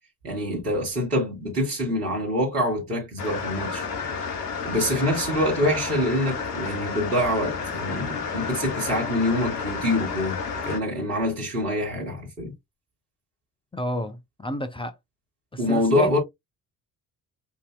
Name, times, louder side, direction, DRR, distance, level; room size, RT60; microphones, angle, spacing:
voice 1, 0.2-3.9 4.6-10.4 10.6-12.5 15.6-16.2, left 1 dB, 85° right, 1.9 m, -25 dB
sound 1, 3.2-10.8, left 5 dB, 75° left, 1.1 m, -31 dB
voice 2, 13.7-15.0 15.5-16.2, left 1 dB, 10° left, 0.7 m, -31 dB
8.0 x 2.7 x 2.3 m
figure-of-eight pair, 50°, 46 cm